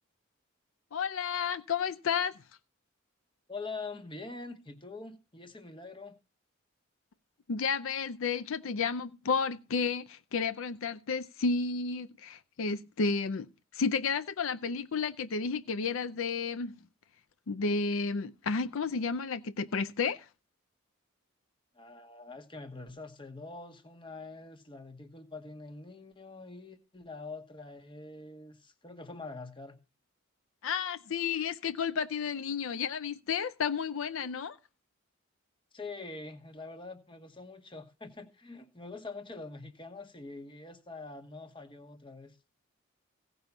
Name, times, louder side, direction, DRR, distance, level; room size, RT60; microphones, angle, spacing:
voice 1, 0.9-2.3 7.5-13.5 13.7-16.8 17.5-20.3 30.6-34.6, left 5 dB, 70° left, 0.5 m, -32 dB
voice 2, 3.5-6.2 21.7-29.8 35.7-42.4, left 3 dB, 25° left, 1.1 m, -44 dB
16.5 x 5.5 x 5.9 m
head